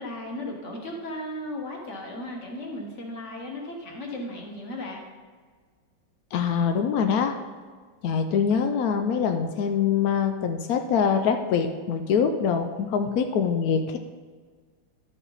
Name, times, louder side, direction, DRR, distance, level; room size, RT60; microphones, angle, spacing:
voice 1, 0.0-5.0, left 1 dB, 40° left, 0 dB, 1.7 m, -36 dB
voice 2, 6.3-7.3 8.0-14.0, left 6 dB, 80° left, 6 dB, 0.8 m, -24 dB
12.0 x 6.0 x 4.0 m, 1.5 s
omnidirectional pair, 2.2 m